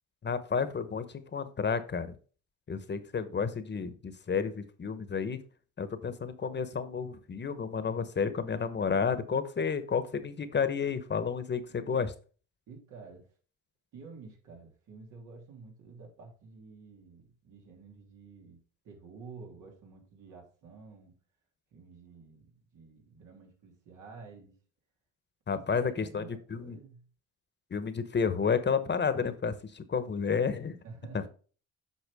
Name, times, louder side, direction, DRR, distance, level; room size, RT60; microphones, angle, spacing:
voice 1, 0.2-2.1 2.7-5.4 5.8-12.1 25.5-26.2 26.5-26.8 27.7-30.8, left 6 dB, 35° left, 12 dB, 1.1 m, -31 dB
voice 2, 11.7-12.0 12.7-13.3 13.9-21.2 21.7-24.6 25.5-27.1 30.8-31.3, right 4 dB, 80° right, 1 dB, 3.1 m, -50 dB
8.4 x 5.7 x 3.5 m, 0.37 s
cardioid pair, 90°, 30 cm